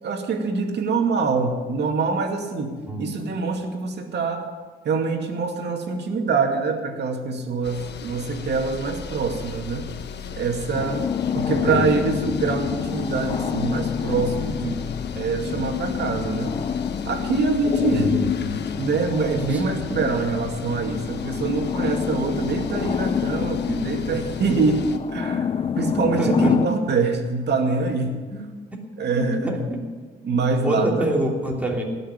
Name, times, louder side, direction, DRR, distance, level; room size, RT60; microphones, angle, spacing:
voice 1, 0.0-4.5 4.8-9.9 10.4-11.0 11.3-14.8 15.1-16.6 17.0-18.1 18.7-28.2 29.0-29.6 30.2-31.1, right 4 dB, 60° right, 3 dB, 2.3 m, -25 dB
sound 1, 7.6-25.0, left 7 dB, 60° left, 1.2 m, -36 dB
sound 2, 10.7-26.7, left 7 dB, 30° left, 0.4 m, -27 dB
voice 2, 11.7-12.0 17.9-18.6 19.5-19.6 19.9-20.0 26.2-26.6 28.3-28.4 29.1-29.8 30.6-31.8, right 1 dB, 5° right, -2 dB, 3.0 m, -26 dB
18.0 x 6.7 x 9.7 m, 1.4 s
cardioid pair, 90°, 20 cm